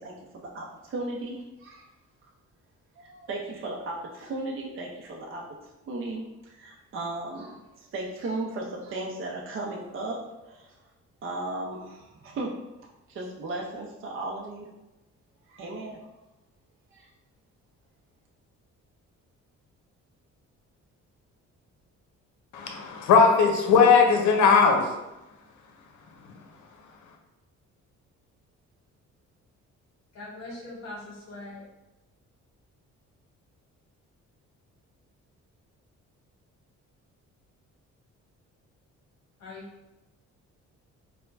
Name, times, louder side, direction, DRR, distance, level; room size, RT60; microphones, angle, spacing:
voice 1, 0.0-1.9 3.0-5.5 5.9-10.7 11.2-12.5 12.8-14.7 15.5-16.0 16.9-17.1, right 2 dB, 45° right, 0.6 m, -36 dB
voice 2, 22.5-24.9 26.2-26.5, left 5 dB, 85° left, 0.7 m, -19 dB
voice 3, 30.1-31.7 39.4-39.7, left 2 dB, 60° left, 1.0 m, -41 dB
4.4 x 2.2 x 2.5 m
cardioid pair, 90°, 30 cm